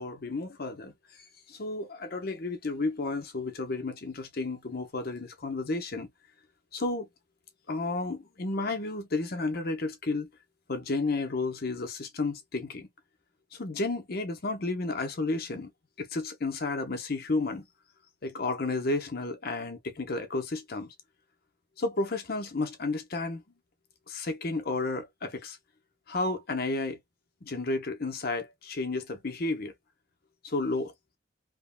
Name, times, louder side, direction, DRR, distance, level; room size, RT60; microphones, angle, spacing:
voice 1, 0.0-6.1 6.7-7.1 7.7-10.3 10.7-12.9 13.5-15.7 16.0-17.7 18.2-20.9 21.8-23.4 24.1-25.6 26.1-27.0 27.4-29.7 30.4-30.9, left 3 dB, 50° left, 0.7 m, -32 dB
3.5 x 2.1 x 2.2 m
head